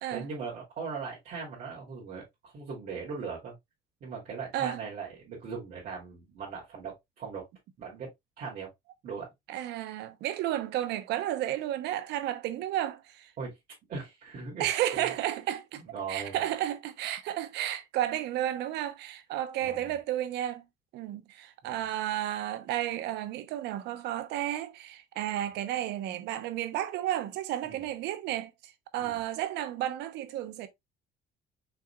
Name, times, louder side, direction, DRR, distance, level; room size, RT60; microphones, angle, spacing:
voice 1, 0.1-3.5 4.0-7.5 7.8-8.1 8.4-8.7 9.0-9.3 13.4-13.6 13.9-14.7 14.9-15.1 15.9-16.4 19.6-19.9 21.6-21.8 27.6-27.8 29.0-29.2, right 5 dB, 55° right, 2.7 m, -39 dB
voice 2, 9.5-13.3 14.6-15.8 16.1-20.6 20.9-30.7, right 12 dB, 85° right, 0.8 m, -32 dB
5.7 x 3.9 x 2.3 m
cardioid pair, 110°, 17 cm